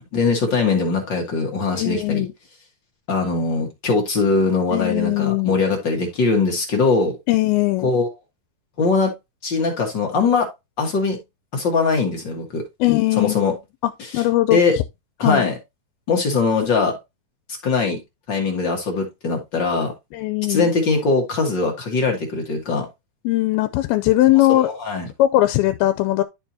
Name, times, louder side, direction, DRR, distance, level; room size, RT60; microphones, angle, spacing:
voice 1, 0.1-2.2 3.1-7.2 7.8-8.1 8.8-9.1 9.4-10.5 10.8-11.2 11.5-12.6 13.2-13.5 14.1-14.2 14.5-14.8 15.2-15.6 16.1-16.9 17.6-18.0 18.3-19.9 20.5-22.9 24.5-25.1, left 4 dB, 50° left, 1.4 m, -21 dB
voice 2, 1.8-2.3 4.7-5.6 7.3-7.9 12.8-13.5 13.8-14.8 15.2-15.5 20.1-20.7 23.3-24.7 25.2-26.2, left 16 dB, 90° left, 2.5 m, -19 dB
12.0 x 4.4 x 2.7 m
omnidirectional pair, 4.3 m